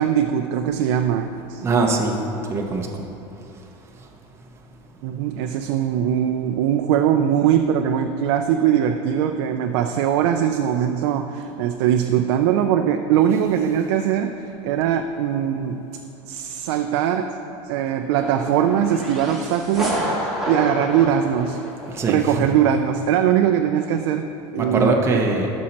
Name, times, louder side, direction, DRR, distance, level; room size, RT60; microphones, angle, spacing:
voice 1, 0.0-1.6 5.0-14.3 14.6-15.8 16.2-17.3 17.7-20.0 20.5-21.6 22.0-25.2, right 9 dB, 75° right, 5 dB, 0.4 m, -21 dB
voice 2, 1.6-2.2 2.5-3.0 21.9-22.5 24.6-25.5, right 3 dB, 15° right, 0 dB, 0.7 m, -22 dB
sound 1, 18.1-22.2, equal, ahead, 1.6 m, -29 dB
12.5 x 6.3 x 2.9 m, 2.7 s
supercardioid pair, 135°, 15 cm